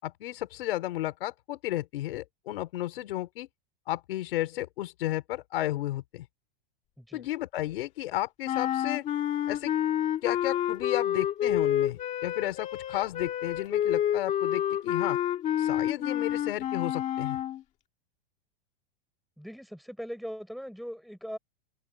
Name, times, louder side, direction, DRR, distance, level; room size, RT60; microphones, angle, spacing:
voice 1, 0.0-3.5 3.9-6.3 7.1-9.1 9.5-9.7 10.2-15.2 15.6-17.4, left 15 dB, 70° left, 5.2 m, -33 dB
voice 2, 7.0-7.3 19.4-21.4, equal, ahead, 7.3 m, -40 dB
sound 1, 8.4-17.6, left 11 dB, 25° left, 1.9 m, -29 dB
supercardioid pair, 165°, 30 cm